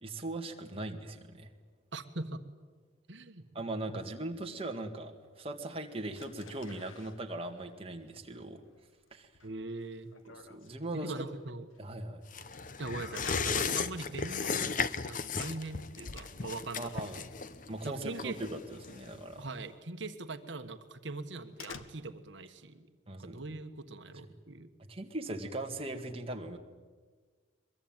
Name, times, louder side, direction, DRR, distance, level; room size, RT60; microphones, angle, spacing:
voice 1, 0.0-1.5 3.5-8.6 9.1-9.3 10.2-11.1 11.8-12.3 16.8-17.2 17.7-19.4 23.1-23.4 24.9-26.6, right 2 dB, 30° right, 4 dB, 1.9 m, -39 dB
voice 2, 1.9-2.4 3.1-3.4 3.9-4.0 9.4-10.1 10.9-11.6 12.8-14.7 15.0-17.2 17.8-18.4 19.4-24.7, right 2 dB, 65° right, 8 dB, 1.4 m, -41 dB
sound 1, 6.1-18.0 18.3-18.8 19.2-19.4 19.8-19.9 20.3-20.4 20.8-22.4, left 4 dB, 80° left, 1.4 m, -53 dB
sound 2, 12.3-19.4 19.7-19.8, left 5 dB, 40° left, 0.8 m, -36 dB
23.0 x 22.5 x 9.0 m, 1.5 s
head